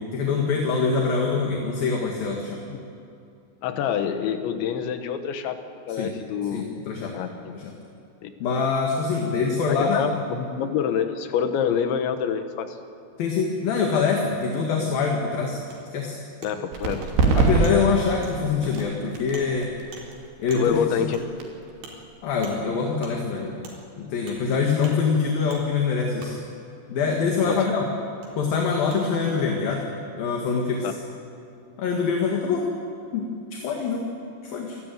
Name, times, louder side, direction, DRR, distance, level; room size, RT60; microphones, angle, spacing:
voice 1, 0.0-2.6 6.0-6.1 6.5-7.1 7.5-7.6 8.4-10.0 13.2-15.6 15.9-16.2 17.4-19.7 20.4-20.8 22.2-23.5 24.0-26.3 26.9-27.9 28.4-29.9 30.2-30.9 31.8-32.7 33.1-34.1 34.4-34.8, left 5 dB, 60° left, 0 dB, 3.4 m, -24 dB
voice 2, 3.6-5.6 5.9-6.7 7.1-7.5 8.2-8.3 9.3-9.4 9.7-12.8 16.4-17.1 20.5-21.2 27.5-27.6 30.8-30.9, left 8 dB, 85° left, 8 dB, 3.6 m, -26 dB
Wood, 15.7-15.8 16.4-16.5 17.0-17.1 17.6-17.8 18.2-18.4 18.8-18.9 19.3-19.5 19.9-20.0 20.5-20.6 21.1-21.2 21.8-21.9 22.4-22.6 23.0-23.2 23.6-23.8 24.3-24.4 24.8-25.0 25.5-25.6 26.2-26.3 27.4-27.5 28.2-28.3 28.9-29.0, right 4 dB, 80° right, 6.3 m, -42 dB
sound 1, 16.7-24.0, right 3 dB, 65° right, 4.7 m, -27 dB
28.0 x 14.0 x 9.3 m, 2.6 s
omnidirectional pair, 5.1 m